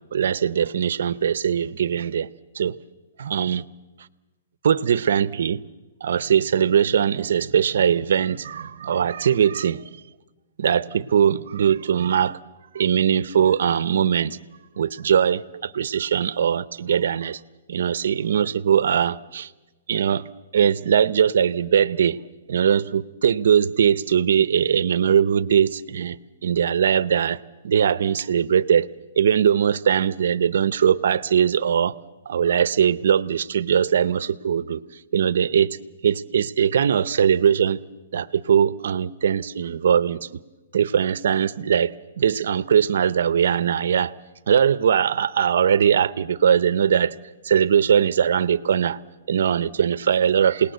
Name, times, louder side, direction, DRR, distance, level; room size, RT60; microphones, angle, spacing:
voice 1, 0.1-2.3 2.5-2.8 3.2-3.6 4.6-5.6 6.0-9.9 10.6-12.4 12.7-14.4 14.8-17.4 17.7-19.5 19.9-20.3 20.5-22.2 22.5-26.2 26.4-27.4 27.6-28.9 29.2-31.9 32.3-34.8 35.1-35.8 36.0-37.8 38.1-40.3 40.7-44.1 44.5-47.1 47.4-49.0 49.3-50.7, right 8 dB, 65° right, 0.7 m, -20 dB
27.5 x 19.0 x 8.1 m
hypercardioid pair, 170°, 0 cm